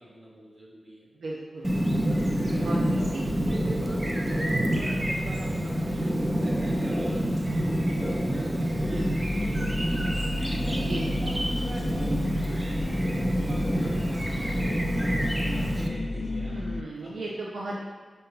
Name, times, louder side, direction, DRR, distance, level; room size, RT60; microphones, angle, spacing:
voice 1, 0.0-1.1 2.4-10.4 11.2-17.3, right 1 dB, 45° right, -4 dB, 2.5 m, -44 dB
voice 2, 1.2-1.7 2.6-3.2 8.9-9.1 10.7-11.1 16.4-17.8, right 2 dB, 85° right, -3 dB, 0.8 m, -36 dB
Chirp tweet, 1.6-15.9, equal, 15° right, 0.8 m, -27 dB
sound 1, 8.8-16.8, left 2 dB, 40° left, 0.4 m, -33 dB
5.7 x 5.4 x 5.7 m, 1.5 s
wide cardioid pair, 115°, 0 cm